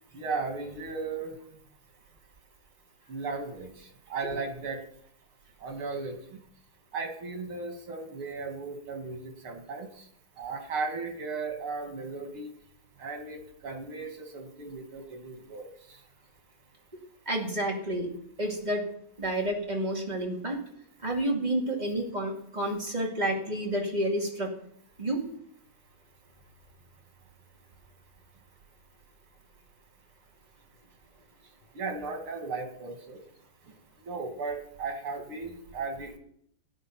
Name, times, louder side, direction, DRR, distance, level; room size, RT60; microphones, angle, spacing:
voice 1, 0.1-1.3 3.1-4.8 5.6-6.4 6.9-10.1 10.4-12.5 13.0-16.0 31.7-33.2 34.0-36.2, right 4 dB, 85° right, 4 dB, 3.0 m, -36 dB
voice 2, 17.3-18.1 18.4-18.9 19.2-20.6 21.0-24.5 25.0-25.2, right 1 dB, 20° right, -1 dB, 2.5 m, -29 dB
13.0 x 9.8 x 6.0 m, 0.68 s
omnidirectional pair, 2.3 m